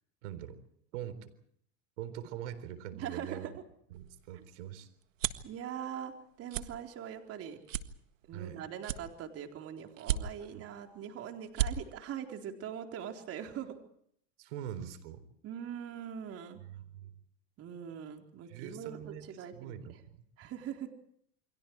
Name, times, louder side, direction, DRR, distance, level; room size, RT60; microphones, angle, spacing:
voice 1, 0.2-0.6 0.9-1.3 2.0-3.5 3.9-4.9 8.3-8.6 10.5-10.7 14.4-15.2 16.6-17.1 18.5-19.3 19.5-20.2, right 10 dB, 65° right, 13 dB, 4.1 m, -43 dB
voice 2, 2.9-3.5 4.3-4.4 5.4-6.1 6.4-7.6 8.3-13.8 15.4-16.6 17.6-19.7 20.4-20.9, right 9 dB, 40° right, 4 dB, 4.1 m, -42 dB
sound 1, 3.9-5.5 6.0-6.2 6.5-6.7 7.2-7.3 7.7-8.5 8.8-9.5 10.0-10.6 11.1-11.2 11.4-11.7, right 11 dB, 90° right, 1.7 m, -34 dB
29.5 x 23.5 x 4.8 m, 0.67 s
hypercardioid pair, 115°, 38 cm